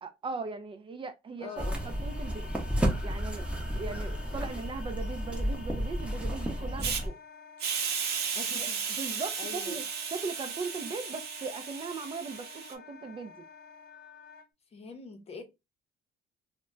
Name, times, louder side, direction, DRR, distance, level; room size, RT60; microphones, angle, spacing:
voice 1, 0.0-2.5 3.0-3.4 3.7-7.2 8.6-9.8 10.1-13.3, right 4 dB, 30° right, 0.4 m, -39 dB
Wind instrument woodwind instrument, 1.4-14.5, left 5 dB, 70° left, 0.7 m, -50 dB
voice 2, 1.4-1.8 8.3-8.8 9.4-9.8 14.7-15.4, left 4 dB, 35° left, 0.7 m, -43 dB
sound 1, 1.6-7.1, equal, 5° right, 0.8 m, -32 dB
Hiss, 6.8-7.0 7.6-12.7, right 6 dB, 70° right, 0.7 m, -34 dB
2.1 x 2.1 x 3.6 m
cardioid pair, 110°, 17 cm